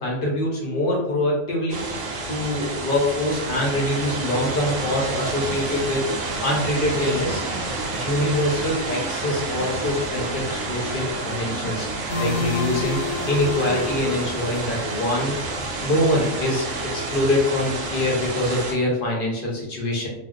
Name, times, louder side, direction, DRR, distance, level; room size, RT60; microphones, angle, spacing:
voice 1, 0.0-1.9 2.3-7.4 7.9-11.9 12.2-15.4 15.8-20.1, left 1 dB, 50° left, -2 dB, 0.7 m, -24 dB
sound 1, 1.7-18.7, right 3 dB, 65° right, 0.9 m, -30 dB
sound 2, 4.3-14.3, right 2 dB, 90° right, 1.2 m, -35 dB
sound 3, 12.1-15.8, left 3 dB, 85° left, 1.1 m, -31 dB
2.7 x 2.0 x 3.7 m, 0.85 s
omnidirectional pair, 1.5 m